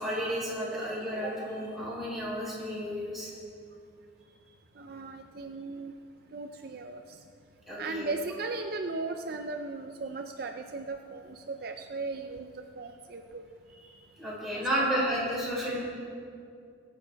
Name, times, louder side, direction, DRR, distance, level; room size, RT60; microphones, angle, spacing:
voice 1, 0.0-3.3 7.7-8.1 13.8-13.9 14.2-15.8, equal, ahead, -7 dB, 4.1 m, -32 dB
voice 2, 4.8-5.9 6.3-7.2 7.8-12.5 12.8-13.4 14.5-14.8, right 3 dB, 50° right, 5 dB, 0.5 m, -37 dB
21.5 x 8.4 x 4.6 m, 2.4 s
head